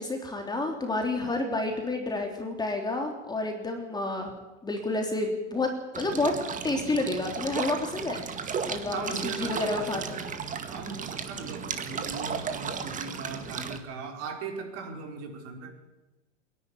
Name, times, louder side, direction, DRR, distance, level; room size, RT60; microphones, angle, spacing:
voice 1, 0.0-4.3 4.6-6.3 6.6-8.2 8.7-10.2, left 2 dB, 10° left, 3 dB, 3.3 m, -30 dB
sound 1, 5.9-13.8, right 6 dB, 20° right, 2.0 m, -35 dB
voice 2, 8.9-10.3 10.7-15.7, right 5 dB, 45° right, 3 dB, 5.0 m, -38 dB
26.5 x 11.0 x 9.9 m, 1.1 s
hypercardioid pair, 115°, 36 cm